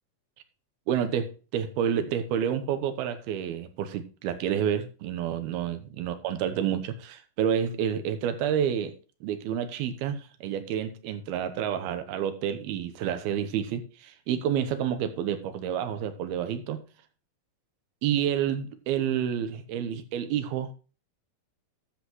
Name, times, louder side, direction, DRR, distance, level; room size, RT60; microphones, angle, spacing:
voice 1, 0.9-16.8 18.0-20.7, right 9 dB, 85° right, 3.0 m, -29 dB
12.5 x 7.4 x 3.1 m
omnidirectional pair, 4.3 m